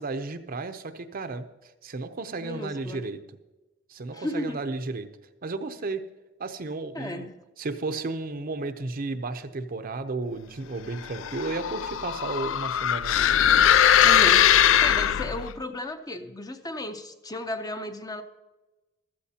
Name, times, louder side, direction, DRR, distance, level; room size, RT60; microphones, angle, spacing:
voice 1, 0.0-1.5 1.8-3.2 3.9-5.1 5.4-6.0 6.4-7.3 7.6-13.3, right 3 dB, 45° right, 8 dB, 0.7 m, -33 dB
voice 2, 2.4-3.1 4.1-4.6 6.9-7.3 14.0-14.5 14.8-18.2, left 1 dB, 20° left, 7 dB, 0.6 m, -34 dB
sound 1, 11.1-15.5, left 10 dB, 70° left, 0.4 m, -20 dB
15.0 x 13.0 x 2.8 m, 1.1 s
head